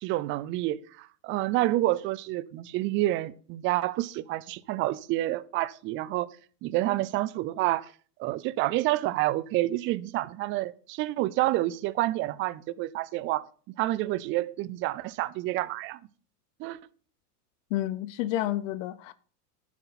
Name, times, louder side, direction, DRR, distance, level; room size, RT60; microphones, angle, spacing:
voice 1, 0.0-6.3 6.6-7.9 8.2-13.4 13.8-16.0 16.6-16.8, right 16 dB, 25° right, 0.4 m, -28 dB
voice 2, 17.7-19.1, left 14 dB, 55° left, 0.7 m, -30 dB
10.5 x 9.2 x 4.1 m
hypercardioid pair, 120°, 48 cm